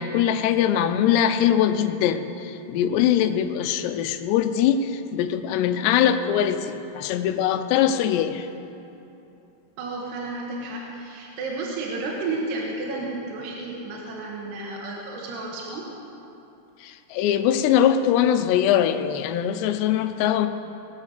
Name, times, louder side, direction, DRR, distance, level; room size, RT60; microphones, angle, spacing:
voice 1, 0.0-8.5 16.8-20.5, left 9 dB, 85° left, 9 dB, 2.8 m, -22 dB
voice 2, 9.8-15.9, right 3 dB, 80° right, -2 dB, 3.4 m, -32 dB
20.5 x 7.3 x 6.6 m, 2.8 s
omnidirectional pair, 4.8 m